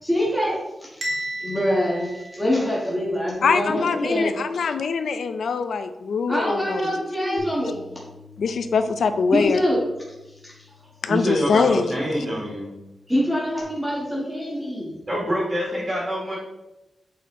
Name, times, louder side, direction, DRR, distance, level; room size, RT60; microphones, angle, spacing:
voice 1, 0.0-4.3 6.3-7.8 9.3-9.8 10.2-10.7 13.1-15.0, equal, ahead, -6 dB, 1.5 m, -25 dB
Bell, 1.0-3.1, equal, 40° right, 1.7 m, -33 dB
voice 2, 3.4-6.8 8.4-9.6 11.0-11.9, left 5 dB, 85° left, 10 dB, 0.5 m, -23 dB
Bass guitar, 7.4-13.6, left 3 dB, 50° left, 1.9 m, -49 dB
voice 3, 11.1-12.7 15.1-16.4, equal, 25° right, -5 dB, 2.1 m, -25 dB
8.3 x 4.4 x 3.7 m, 0.99 s
wide cardioid pair, 165°, 0 cm